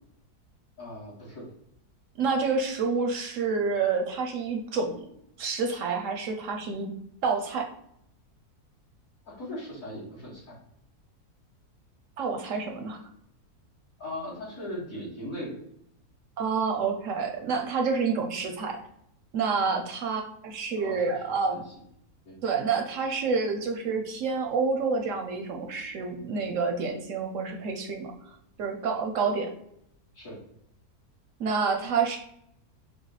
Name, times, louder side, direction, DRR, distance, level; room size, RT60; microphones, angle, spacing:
voice 1, 0.8-1.5 9.3-10.6 14.0-15.6 20.8-21.5 22.3-22.4 30.1-30.4, left 1 dB, 55° left, -8 dB, 2.4 m, -39 dB
voice 2, 2.2-5.1 5.4-6.9 7.2-7.7 12.2-13.0 16.4-18.8 19.3-21.6 22.4-28.1 28.6-29.5 31.4-32.2, right 5 dB, 70° right, 4 dB, 0.8 m, -28 dB
6.3 x 2.3 x 3.1 m, 0.73 s
omnidirectional pair, 1.7 m